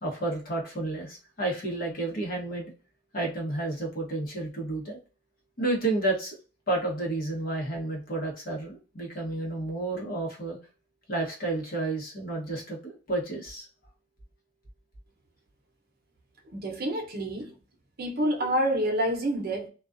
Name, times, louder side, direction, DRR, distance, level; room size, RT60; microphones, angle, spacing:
voice 1, 0.0-2.7 3.1-5.0 5.6-6.4 6.7-10.6 11.1-13.7, right 2 dB, 50° left, 1.0 m, -31 dB
voice 2, 16.5-17.5 18.0-19.7, right 1 dB, 55° right, 0.7 m, -28 dB
2.3 x 2.3 x 2.4 m
head